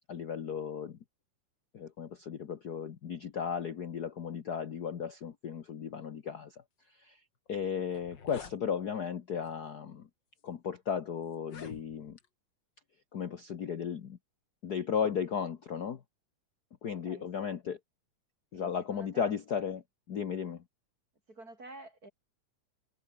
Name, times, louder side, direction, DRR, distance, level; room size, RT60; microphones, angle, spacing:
voice 1, 0.1-1.0 1.7-7.2 7.5-10.1 10.4-12.2 13.1-14.2 14.6-16.0 16.8-17.8 18.5-20.6, left 7 dB, 60° left, 1.0 m, -35 dB
sound 1, 7.5-7.6 7.8-8.6 9.4-9.7 10.4-10.5 11.3-12.3, left 6 dB, 40° left, 2.6 m, -48 dB
voice 2, 16.9-17.3 18.5-19.3 21.3-22.1, right 2 dB, 25° right, 6.9 m, -50 dB
omnidirectional pair, 3.6 m